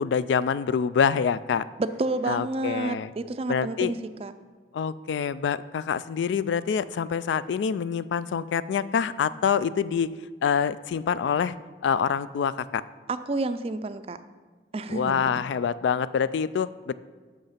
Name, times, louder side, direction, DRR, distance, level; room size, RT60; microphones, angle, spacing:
voice 1, 0.0-1.6 2.3-3.1 3.5-3.9 4.7-10.1 10.4-11.5 11.8-12.8 14.9-16.9, left 7 dB, 80° left, 16 dB, 0.3 m, -26 dB
voice 2, 1.8-4.3 13.1-14.2 14.7-15.2, right 2 dB, 35° right, 11 dB, 0.3 m, -29 dB
6.6 x 6.3 x 5.7 m, 1.5 s
head